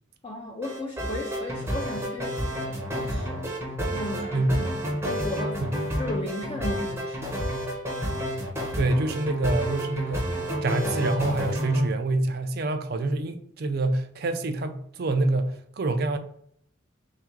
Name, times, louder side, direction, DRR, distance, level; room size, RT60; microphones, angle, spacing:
voice 1, 0.2-3.4 3.8-5.6 6.0-7.2, left 1 dB, 25° left, 0.4 m, -36 dB
sound 1, 0.6-11.9, equal, 10° right, 0.6 m, -30 dB
voice 2, 8.7-16.2, right 2 dB, 50° right, 0.4 m, -26 dB
3.5 x 2.4 x 4.5 m
head